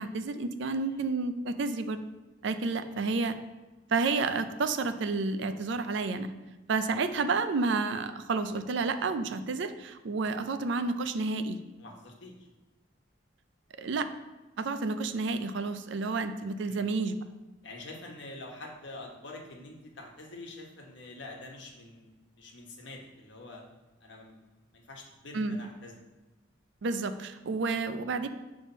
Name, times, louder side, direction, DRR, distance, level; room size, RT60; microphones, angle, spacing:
voice 1, 0.0-2.0 2.4-3.4 3.9-6.3 6.7-11.6 13.8-14.1 14.6-17.2 25.3-25.6 26.8-28.3, right 3 dB, 65° right, 10 dB, 0.4 m, -30 dB
voice 2, 11.8-12.5 16.7-16.9 17.6-23.6 24.0-24.4 24.7-25.9, left 2 dB, 65° left, 0 dB, 1.2 m, -46 dB
7.0 x 3.3 x 5.4 m, 1.2 s
head